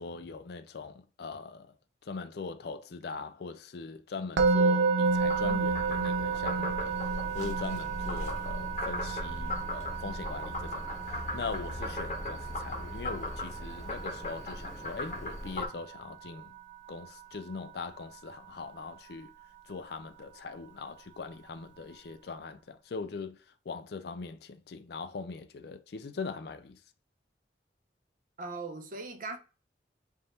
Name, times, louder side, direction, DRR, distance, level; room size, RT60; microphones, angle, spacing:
voice 1, 0.0-1.7 2.0-16.6 16.9-19.3 19.7-23.4 23.7-26.8, left 4 dB, 60° left, 0.4 m, -41 dB
Musical instrument, 4.4-15.5, right 4 dB, 90° right, 0.5 m, -31 dB
Frog, 5.0-15.7, left 1 dB, 40° left, 0.9 m, -38 dB
voice 2, 28.4-29.4, right 3 dB, 50° right, 0.6 m, -39 dB
3.4 x 2.5 x 4.2 m
head